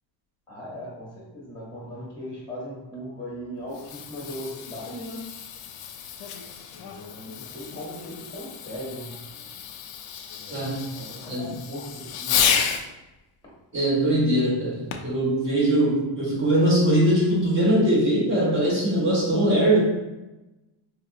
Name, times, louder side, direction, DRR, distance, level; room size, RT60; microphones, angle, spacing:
voice 1, 0.5-5.2 6.7-9.2 10.3-10.7 10.9-12.4, equal, 10° left, -6 dB, 1.1 m, -38 dB
Fireworks, 3.6-12.9 14.9-15.2 15.9-16.0, left 8 dB, 85° left, 0.6 m, -31 dB
voice 2, 10.5-10.8 11.3-11.5 13.7-19.8, right 1 dB, 25° right, -5 dB, 1.2 m, -21 dB
4.4 x 2.8 x 2.4 m, 1.0 s
cardioid pair, 165°, 47 cm